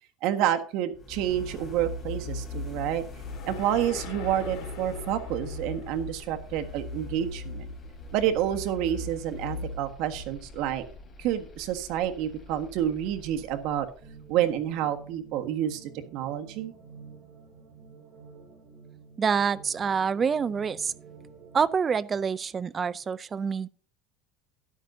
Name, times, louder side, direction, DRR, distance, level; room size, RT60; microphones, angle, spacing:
voice 1, 0.2-3.0 3.4-7.7 8.1-10.8 11.2-13.9 14.3-16.7, right 11 dB, 65° right, 1.6 m, -29 dB
sound 1, 0.9-14.8, left 2 dB, 20° left, 4.2 m, -40 dB
sound 2, 2.4-6.7, left 9 dB, 75° left, 3.4 m, -44 dB
sound 3, 14.0-21.6, right 5 dB, 45° right, 5.2 m, -49 dB
voice 2, 19.2-20.9 21.5-23.7, right 6 dB, 25° right, 0.5 m, -26 dB
13.0 x 10.5 x 2.7 m
cardioid pair, 155°, 0 cm